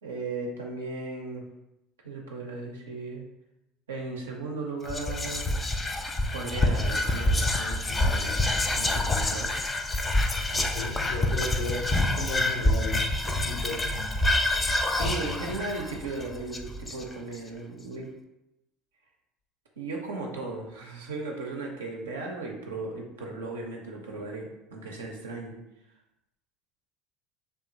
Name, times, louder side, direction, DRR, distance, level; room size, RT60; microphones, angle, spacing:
voice 1, 0.0-1.4 2.0-3.2 3.9-5.5 6.3-8.5 8.7-9.5 14.9-18.1 19.8-25.5, right 3 dB, 85° right, 0 dB, 0.4 m, -36 dB
Whispering, 4.9-17.3, left 1 dB, 20° left, 0.3 m, -27 dB
voice 2, 10.5-11.9 12.2-13.0 13.2-14.2, left 2 dB, 80° left, -3 dB, 0.5 m, -35 dB
sound 1, 10.5-14.7 14.9-17.1, right 2 dB, 40° right, 0.5 m, -44 dB
2.8 x 2.3 x 2.5 m, 0.88 s
hypercardioid pair, 70°, 0 cm